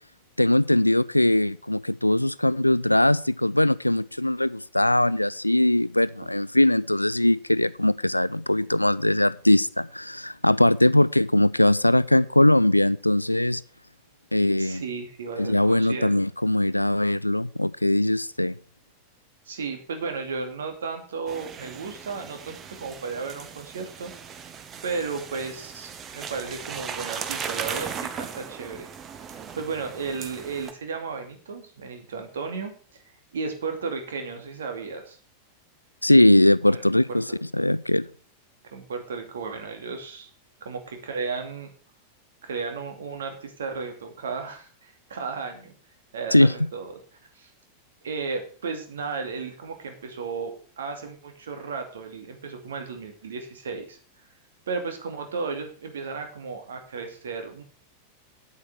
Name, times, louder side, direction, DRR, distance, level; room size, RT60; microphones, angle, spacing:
voice 1, 0.4-13.6 14.3-14.8 15.4-18.6 36.0-37.2 37.5-38.1 46.3-46.5, left 1 dB, 85° left, 20 dB, 0.4 m, -21 dB
voice 2, 14.6-16.1 19.5-24.1 24.8-28.9 29.5-33.0 33.3-35.2 36.7-37.4 38.6-40.3 40.6-41.7 42.4-45.7 46.1-47.0 47.3-47.5 48.0-54.0 54.7-57.6, right 4 dB, 65° right, 5 dB, 2.5 m, -34 dB
sound 1, 21.3-30.7, right 7 dB, 25° right, 1.2 m, -37 dB
8.6 x 8.4 x 6.2 m, 0.41 s
figure-of-eight pair, 90°, 0 cm